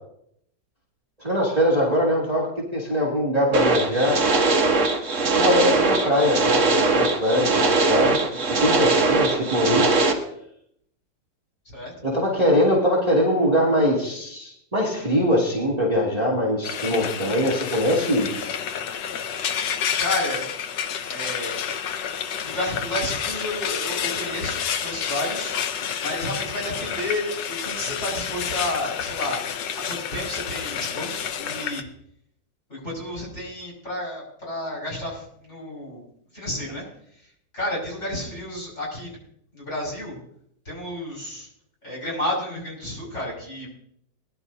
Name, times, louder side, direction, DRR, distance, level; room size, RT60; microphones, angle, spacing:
voice 1, 1.2-4.2 5.3-8.2 8.6-9.9 12.0-18.3, equal, 20° right, -4 dB, 2.4 m, -22 dB
sound 1, 3.5-10.1, right 3 dB, 45° right, 1.5 m, -21 dB
voice 2, 5.6-6.3 11.7-11.9 19.9-20.5 21.0-21.6 22.4-25.6 26.0-29.4 29.9-31.9 32.7-36.0 36.3-36.8 37.5-39.2 39.5-40.2 40.6-41.5 41.8-43.7, left 1 dB, 40° left, -3 dB, 6.1 m, -31 dB
Frying (food), 16.6-31.8, left 8 dB, 75° left, 1.3 m, -29 dB
21.0 x 11.0 x 2.7 m, 0.72 s
omnidirectional pair, 2.0 m